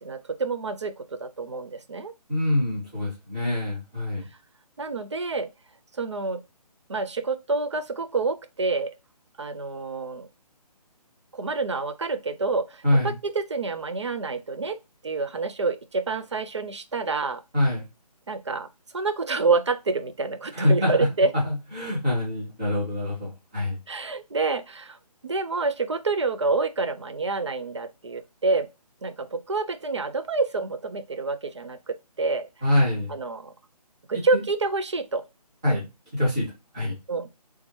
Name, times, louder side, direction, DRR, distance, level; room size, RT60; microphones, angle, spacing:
voice 1, 0.0-2.1 4.8-5.5 6.0-6.4 6.9-8.9 9.4-10.3 11.3-14.8 15.0-17.4 18.3-18.7 18.9-21.3 23.9-25.0 25.2-28.7 29.0-32.5 33.1-33.5 34.1-35.2 37.1-37.3, right 3 dB, 45° right, 0.4 m, -27 dB
voice 2, 2.3-4.3 12.8-13.1 17.5-17.8 20.5-21.1 21.4-23.8 32.6-33.1 35.6-35.9 36.1-36.5 36.7-37.0, left 1 dB, 10° right, 0.9 m, -24 dB
3.4 x 2.7 x 3.0 m
hypercardioid pair, 175°, 20 cm